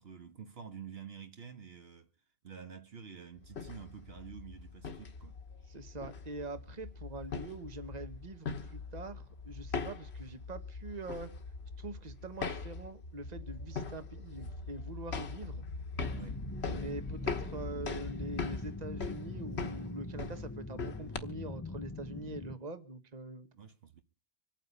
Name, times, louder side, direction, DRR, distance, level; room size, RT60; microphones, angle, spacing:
voice 1, 0.0-2.1 2.4-5.4 16.1-16.5 23.5-24.0, right 7 dB, 70° right, 1.4 m, -49 dB
sound 1, 3.4-21.2, left 4 dB, 75° left, 1.5 m, -41 dB
voice 2, 5.7-11.3 11.8-15.6 16.7-23.5, right 2 dB, 40° right, 1.4 m, -44 dB
sound 2, 16.0-22.5, left 2 dB, 20° left, 0.7 m, -43 dB
25.0 x 9.1 x 5.4 m
omnidirectional pair, 1.1 m